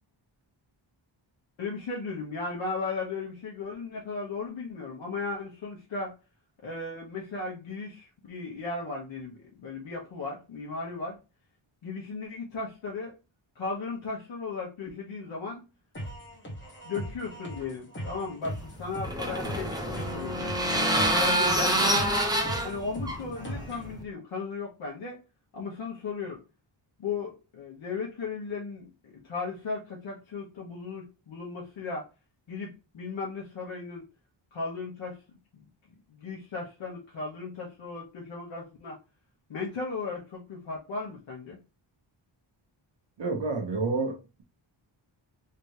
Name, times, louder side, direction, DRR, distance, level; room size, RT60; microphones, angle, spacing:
voice 1, 1.6-6.1 6.6-11.1 11.8-13.1 13.5-15.6 16.8-21.9 22.6-25.2 25.5-26.4 27.0-32.0 32.5-34.0 34.5-35.2 35.5-35.6 36.1-39.0 39.5-41.6, left 4 dB, 70° left, 1.2 m, -36 dB
sound 1, 15.9-23.9, equal, 25° left, 1.1 m, -40 dB
sound 2, 18.5-24.0, right 1 dB, 10° right, 0.6 m, -27 dB
voice 2, 43.2-44.4, right 3 dB, 65° right, 1.1 m, -29 dB
3.4 x 3.0 x 2.9 m
wide cardioid pair, 175°, 47 cm